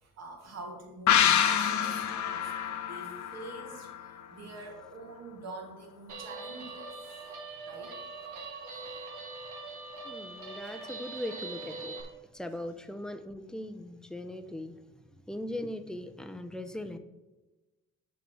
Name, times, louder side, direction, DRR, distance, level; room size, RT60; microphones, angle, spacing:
voice 1, 0.0-2.5 2.9-7.4 7.6-7.9 10.6-10.8, right 2 dB, 60° right, 2.5 m, -46 dB
sound 1, 1.1-4.5 4.8-4.9, left 9 dB, 70° left, 0.7 m, -27 dB
Guitar, 6.1-12.0, right 3 dB, 80° right, 2.0 m, -42 dB
voice 2, 10.0-14.8 15.1-17.0, left 1 dB, ahead, 0.7 m, -40 dB
6.9 x 4.9 x 6.2 m
cardioid pair, 90°, 30 cm